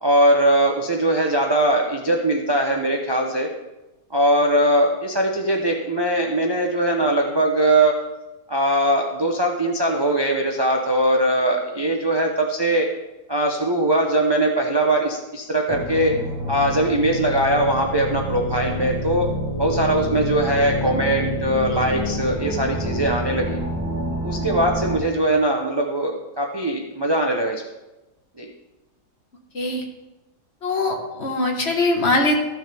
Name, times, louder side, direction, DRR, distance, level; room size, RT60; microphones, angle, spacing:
voice 1, 0.0-3.5 4.1-8.0 8.5-12.9 13.3-16.1 16.5-19.3 19.6-23.6 24.2-27.6 28.4-28.5, right 1 dB, 35° right, 1 dB, 0.4 m, -21 dB
sound 1, 15.7-25.0, equal, 10° right, 1.1 m, -28 dB
voice 2, 30.6-32.4, left 2 dB, 45° left, 1 dB, 1.4 m, -21 dB
14.0 x 6.1 x 3.4 m, 1.0 s
omnidirectional pair, 1.7 m